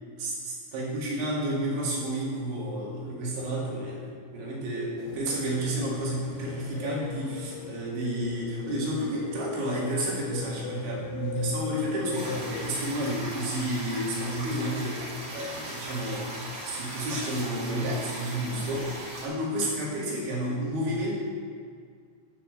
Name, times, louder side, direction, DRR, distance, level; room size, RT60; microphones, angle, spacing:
voice 1, 0.2-4.0 4.3-16.3 16.6-21.1, right 1 dB, 90° right, -6 dB, 4.7 m, -31 dB
sound 1, 5.0-13.0, left 7 dB, 85° left, 2.3 m, -41 dB
sound 2, 12.1-19.2, right 1 dB, 35° right, 2.8 m, -38 dB
12.0 x 5.6 x 6.8 m, 2.1 s
omnidirectional pair, 5.1 m